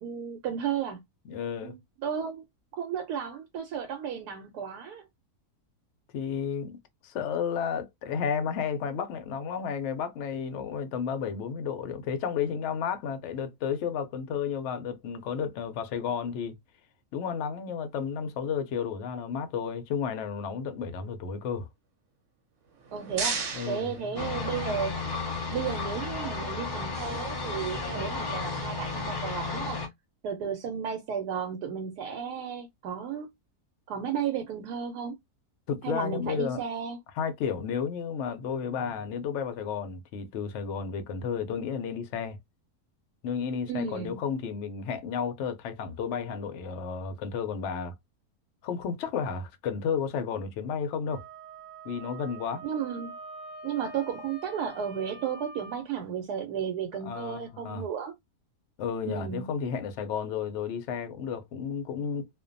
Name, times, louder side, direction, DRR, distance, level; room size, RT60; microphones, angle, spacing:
voice 1, 0.0-1.0 1.6-2.4 2.7-5.0 22.9-25.0 25.5-29.8 30.2-33.3 33.9-35.2 35.8-37.0 43.7-44.2 52.6-53.1 53.6-58.1 59.0-59.5, right 7 dB, 85° right, 1.1 m, -33 dB
voice 2, 1.3-1.8 6.1-6.8 7.0-16.5 17.1-21.7 23.5-24.6 35.7-36.6 37.2-42.4 43.2-48.0 48.6-51.2 51.8-52.6 57.1-57.8 58.8-62.3, left 7 dB, 70° left, 0.7 m, -32 dB
sound 1, 22.6-24.8, right 5 dB, 60° right, 1.0 m, -35 dB
sound 2, 24.1-29.9, left 3 dB, 40° left, 0.3 m, -33 dB
Wind instrument woodwind instrument, 51.0-55.8, right 3 dB, 10° right, 0.7 m, -45 dB
2.5 x 2.2 x 2.5 m
omnidirectional pair, 1.7 m